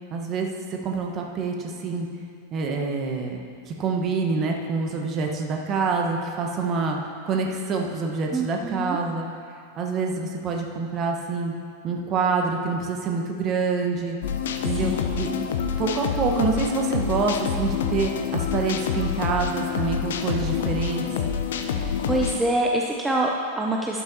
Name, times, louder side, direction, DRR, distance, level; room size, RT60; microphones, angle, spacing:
voice 1, 0.1-2.1 2.5-9.3 9.8-11.5 11.8-14.2 14.6-15.3 15.8-21.0, right 4 dB, 30° right, 1 dB, 1.2 m, -26 dB
voice 2, 8.3-9.0 14.6-15.0 15.3-15.5 21.7-24.0, right 1 dB, 10° right, -1 dB, 0.7 m, -26 dB
sound 1, 14.2-22.4, left 7 dB, 60° left, 0.6 m, -27 dB
12.5 x 12.0 x 2.9 m, 2.3 s
figure-of-eight pair, 90°, 0 cm